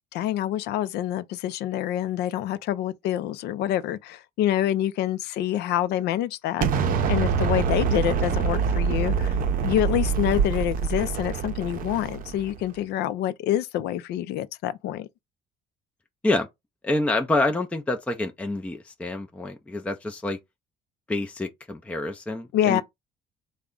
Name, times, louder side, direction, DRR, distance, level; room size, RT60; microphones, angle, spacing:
voice 1, 0.1-15.1 22.5-22.8, left 12 dB, 80° left, 0.4 m, -27 dB
Explosion, 6.6-12.6, right 6 dB, 55° right, 0.6 m, -25 dB
voice 2, 16.8-20.4 21.1-22.8, left 2 dB, 10° left, 0.4 m, -27 dB
3.5 x 2.1 x 3.7 m
cardioid pair, 110°, 17 cm